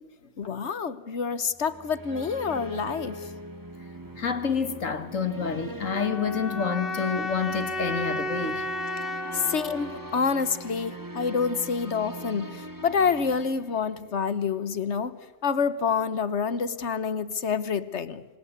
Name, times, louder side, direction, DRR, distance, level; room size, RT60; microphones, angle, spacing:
voice 1, 0.4-3.3 9.3-15.2 15.4-18.3, left 6 dB, 65° left, 1.4 m, -27 dB
sound 1, 1.5-14.4, right 1 dB, 15° right, 2.3 m, -42 dB
voice 2, 4.2-8.7, left 6 dB, 85° left, 2.1 m, -28 dB
sound 2, 5.9-10.9, left 1 dB, 45° left, 1.9 m, -33 dB
27.5 x 25.0 x 8.1 m
omnidirectional pair, 1.3 m